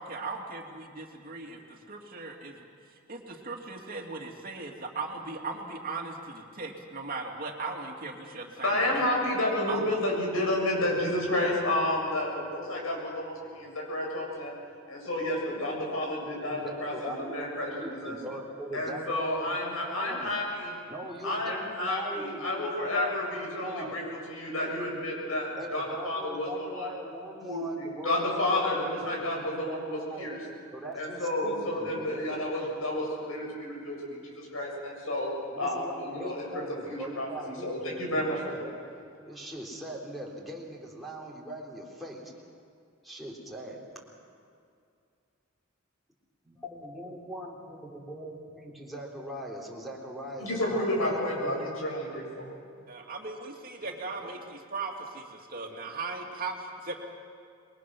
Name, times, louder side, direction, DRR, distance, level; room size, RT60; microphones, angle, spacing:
voice 1, 0.0-2.7 3.1-9.0 9.7-9.9 52.9-57.0, right 3 dB, 45° right, 1 dB, 2.6 m, -38 dB
voice 2, 8.6-14.6 14.9-18.2 18.7-20.8 21.2-24.0 24.3-26.9 27.4-27.6 28.0-30.4 30.9-35.3 35.6-37.3 37.6-38.7 50.4-52.5, left 1 dB, 80° left, -2 dB, 7.9 m, -31 dB
voice 3, 16.5-20.4 20.9-24.0 25.2-30.4 30.7-32.4 35.5-38.2 38.5-38.8 39.2-42.3 43.0-44.1 46.4-51.5 53.8-54.3, right 1 dB, ahead, -4 dB, 3.4 m, -41 dB
27.0 x 22.0 x 6.2 m, 2.4 s
head